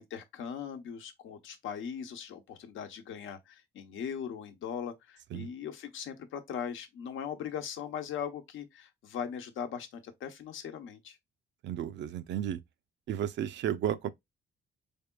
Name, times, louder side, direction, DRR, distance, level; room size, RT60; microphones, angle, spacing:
voice 1, 0.0-11.2, left 8 dB, 80° left, 0.9 m, -39 dB
voice 2, 11.6-12.6 13.1-14.1, right 10 dB, 65° right, 0.5 m, -33 dB
4.5 x 3.5 x 2.2 m
cardioid pair, 90°, 20 cm